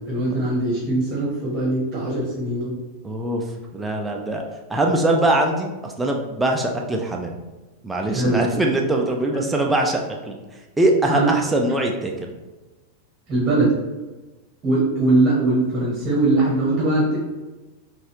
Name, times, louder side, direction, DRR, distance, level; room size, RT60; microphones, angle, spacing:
voice 1, 0.0-2.7 8.0-8.4 11.1-11.3 13.3-13.7 14.6-17.2, right 2 dB, 25° right, -5 dB, 1.1 m, -21 dB
voice 2, 3.0-3.4 3.7-4.4 4.7-7.4 7.8-10.4 10.8-12.3, right 1 dB, 10° right, 1 dB, 0.5 m, -22 dB
4.1 x 2.4 x 2.9 m, 1.2 s
figure-of-eight pair, 90°, 0 cm